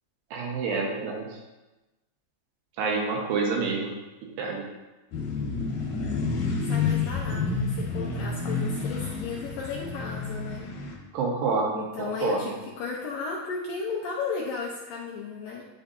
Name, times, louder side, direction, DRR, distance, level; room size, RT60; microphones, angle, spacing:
voice 1, 0.3-1.3 2.8-3.9 4.4-4.6 11.1-12.5, right 4 dB, 75° right, 0 dB, 3.1 m, -28 dB
sound 1, 5.1-10.9, left 4 dB, 60° left, 2.3 m, -29 dB
voice 2, 6.6-10.7 11.7-15.6, left 4 dB, 85° left, -3 dB, 2.0 m, -34 dB
9.9 x 7.8 x 2.7 m, 1.1 s
omnidirectional pair, 5.1 m